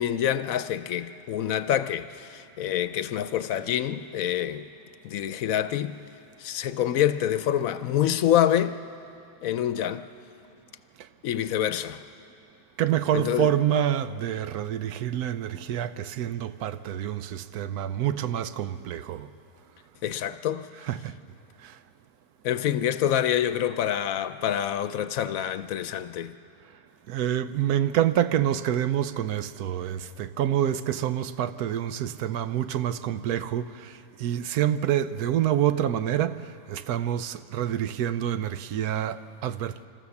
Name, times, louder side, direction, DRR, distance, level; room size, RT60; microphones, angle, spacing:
voice 1, 0.0-4.6 5.0-6.0 6.4-8.8 9.4-10.1 11.2-12.0 13.1-13.5 20.0-20.7 22.4-26.3, left 10 dB, 70° left, 1.0 m, -26 dB
voice 2, 12.8-19.3 20.7-21.1 21.6-21.8 27.1-39.9, right 11 dB, 85° right, 1.2 m, -27 dB
28.5 x 13.5 x 7.1 m
omnidirectional pair, 1.6 m